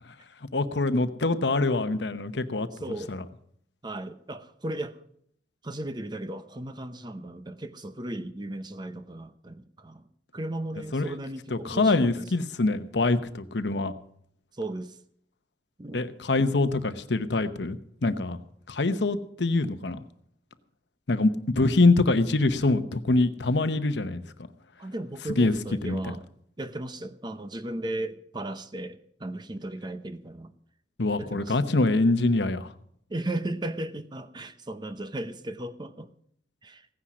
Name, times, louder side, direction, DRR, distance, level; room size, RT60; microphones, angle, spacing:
voice 1, 0.5-2.7 3.1-3.2 10.9-11.1 11.5-13.9 15.9-18.4 18.7-20.0 21.1-24.2 25.4-25.5 25.8-26.0 31.0-32.7, left 2 dB, 70° left, 0.9 m, -24 dB
voice 2, 2.7-3.1 3.8-5.0 5.6-10.1 10.3-12.3 14.5-15.0 15.8-16.1 24.8-30.5 31.2-31.8 33.1-36.1 36.6-36.9, right 1 dB, 25° right, 0.7 m, -36 dB
16.5 x 10.0 x 6.2 m
head